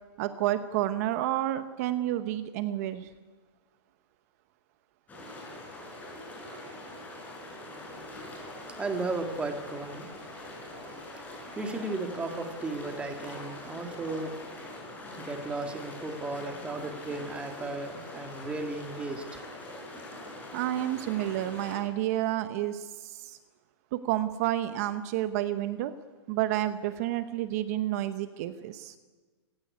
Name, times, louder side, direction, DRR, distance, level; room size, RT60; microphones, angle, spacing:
voice 1, 0.2-3.1 20.5-23.4 23.9-25.9 26.3-29.0, right 13 dB, 35° right, 11 dB, 0.9 m, -30 dB
sound 1, 5.1-21.8, left 1 dB, 10° left, 6.4 m, -43 dB
voice 2, 8.1-10.1 11.2-14.4 15.2-19.4, right 3 dB, 10° right, 5 dB, 2.0 m, -35 dB
27.5 x 16.5 x 9.6 m, 1.4 s
hypercardioid pair, 160°, 14 cm